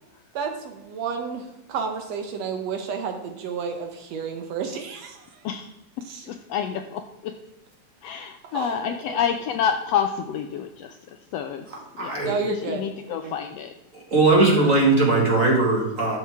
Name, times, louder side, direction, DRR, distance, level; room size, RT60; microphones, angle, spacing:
voice 1, 0.4-5.3 6.1-6.3 8.5-9.2 12.2-12.8 13.1-13.3, right 5 dB, 70° right, 5 dB, 1.8 m, -31 dB
voice 2, 6.3-7.0 8.0-11.0 11.3-11.6 12.0-13.7 14.2-14.4 15.3-15.5, left 8 dB, 80° left, 7 dB, 1.4 m, -28 dB
voice 3, 12.0-12.3 14.1-16.2, right 3 dB, 30° right, -1 dB, 1.8 m, -19 dB
11.5 x 7.2 x 3.5 m, 1.0 s
omnidirectional pair, 3.5 m